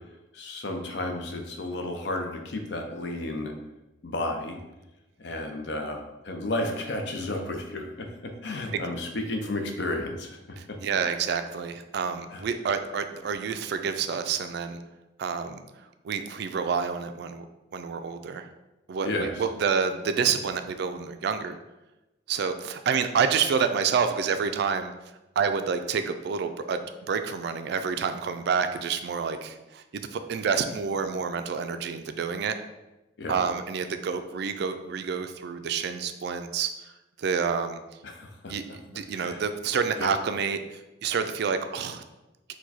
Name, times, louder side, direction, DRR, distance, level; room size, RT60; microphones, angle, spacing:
voice 1, 0.3-3.5 4.0-4.6 5.2-10.4 10.7-10.8 12.3-12.4 19.0-19.3 33.2-33.4 38.0-38.8 39.1-39.4 40.0-40.1, left 2 dB, 60° left, 4 dB, 0.6 m, -32 dB
voice 2, 10.6-14.8 15.2-15.6 16.0-17.4 17.7-18.5 18.9-21.6 22.3-24.9 25.4-32.5 33.3-36.9 37.2-37.8 38.5-38.6 38.9-42.0, right 6 dB, 60° right, 9 dB, 0.3 m, -28 dB
4.7 x 2.2 x 4.1 m, 1.0 s
head